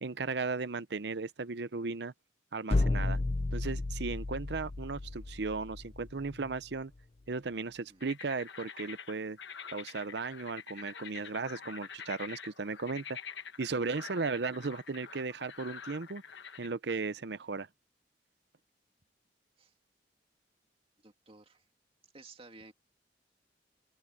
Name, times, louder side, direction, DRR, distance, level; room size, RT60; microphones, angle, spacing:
voice 1, 0.0-2.1 2.5-3.2 3.5-6.9 7.3-9.4 9.7-13.2 13.6-16.2 16.6-17.7, right 4 dB, 70° right, 0.7 m, -36 dB
sound 1, 2.7-6.6, left 2 dB, 35° left, 0.5 m, -33 dB
sound 2, 8.0-16.7, left 7 dB, 85° left, 1.2 m, -47 dB
voice 2, 21.0-21.6 22.1-22.7, right 3 dB, 35° right, 2.3 m, -54 dB
open air
head